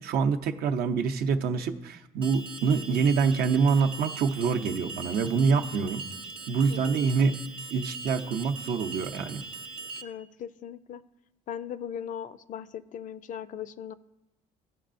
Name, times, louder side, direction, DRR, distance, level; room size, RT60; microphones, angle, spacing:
voice 1, 0.0-6.0 6.5-7.3 7.7-9.4, right 5 dB, 65° right, 5 dB, 0.7 m, -26 dB
Alarm, 2.2-10.0, right 3 dB, 30° right, 0.7 m, -41 dB
voice 2, 6.7-7.1 10.0-11.0 11.5-13.9, left 9 dB, 50° left, 15 dB, 0.4 m, -39 dB
15.0 x 5.4 x 2.5 m, 0.97 s
cardioid pair, 110°, 17 cm